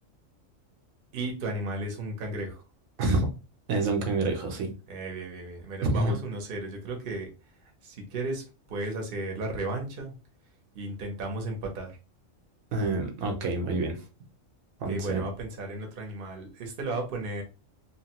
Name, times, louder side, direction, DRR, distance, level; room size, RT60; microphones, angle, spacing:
voice 1, 1.1-2.6 4.9-7.3 7.8-10.1 10.7-11.9 14.9-17.4, right 2 dB, 50° right, 2 dB, 0.9 m, -34 dB
voice 2, 3.7-4.7 5.8-6.2 12.7-14.0 14.8-15.2, right 2 dB, 85° right, 4 dB, 1.1 m, -27 dB
3.0 x 2.2 x 2.9 m, 0.31 s
omnidirectional pair, 1.4 m